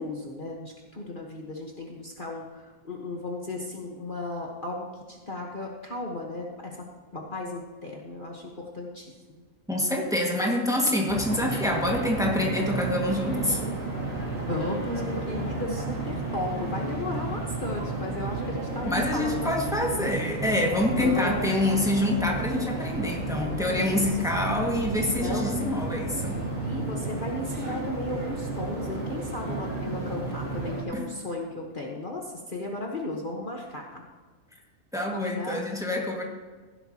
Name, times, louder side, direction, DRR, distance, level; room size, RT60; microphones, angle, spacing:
voice 1, 0.0-6.9 7.1-9.1 14.5-20.1 21.0-21.4 23.8-24.0 24.3-24.4 25.2-25.7 26.6-34.0 35.1-35.6, left 2 dB, 40° left, -1 dB, 1.4 m, -35 dB
voice 2, 9.7-13.6 18.9-26.4 30.9-31.1 34.9-36.2, left 1 dB, ahead, -1 dB, 1.8 m, -26 dB
sound 1, 11.1-30.8, right 3 dB, 50° right, 3.0 m, -32 dB
15.5 x 12.0 x 2.9 m, 1.4 s
omnidirectional pair, 1.5 m